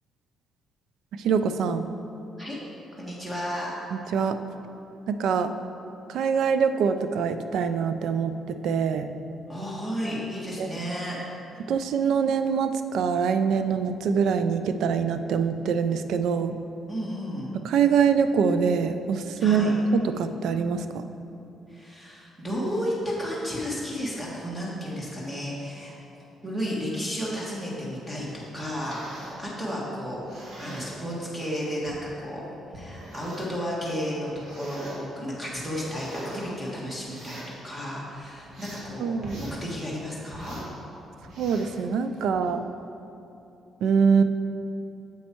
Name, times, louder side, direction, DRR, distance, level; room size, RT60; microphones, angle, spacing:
voice 1, 1.2-1.9 3.9-4.4 5.1-5.5 6.1-9.1 10.6-10.7 11.7-16.5 17.6-21.0 39.0-39.4 41.4-42.6 43.8-44.2, right 6 dB, 80° right, 10 dB, 0.4 m, -24 dB
voice 2, 3.0-3.7 9.5-11.2 16.9-17.5 19.4-19.7 21.7-26.0 26.4-32.4 32.7-40.6, equal, 10° right, -5 dB, 1.5 m, -33 dB
sound 1, 28.5-29.4 30.1-30.9 31.8-32.0 32.7-33.6 34.3-35.0 35.5-36.5 37.0-37.5 38.1-38.9 39.2-39.6 40.3-40.7 41.2-41.8 42.3-42.5, right 1 dB, 55° right, 1.7 m, -42 dB
7.2 x 5.3 x 4.4 m, 2.9 s
cardioid pair, 90°, 0 cm